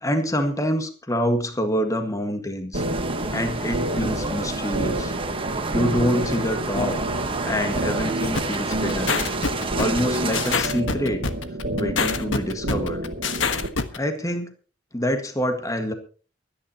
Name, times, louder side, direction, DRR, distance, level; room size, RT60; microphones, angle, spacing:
voice 1, 0.0-2.8 3.3-5.1 5.7-7.0 7.4-9.2 9.7-11.3 11.7-13.0 13.9-14.5 14.9-15.9, equal, 15° left, 6 dB, 1.7 m, -26 dB
sound 1, 2.7-10.6, right 3 dB, 30° right, 1.3 m, -29 dB
sound 2, 2.7-13.7, right 1 dB, 65° right, 1.8 m, -29 dB
sound 3, 8.3-14.0, left 4 dB, 85° left, 1.4 m, -25 dB
24.0 x 10.0 x 3.0 m, 0.36 s
head